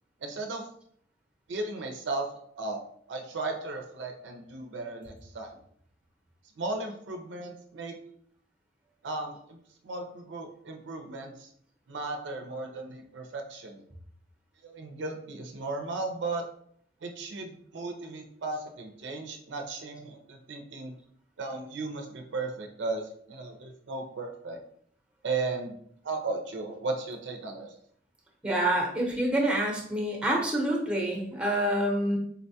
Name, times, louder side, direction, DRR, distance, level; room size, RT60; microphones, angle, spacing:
voice 1, 0.2-0.7 1.5-2.3 2.6-2.8 3.1-5.6 6.6-8.0 9.0-9.6 9.8-11.5 11.9-13.8 14.6-16.5 17.0-20.9 21.4-24.6 25.2-25.8 26.0-27.7, right 3 dB, 70° right, 3 dB, 0.5 m, -35 dB
voice 2, 28.4-32.2, right 1 dB, 5° right, -1 dB, 0.8 m, -27 dB
3.9 x 2.2 x 2.7 m, 0.65 s
head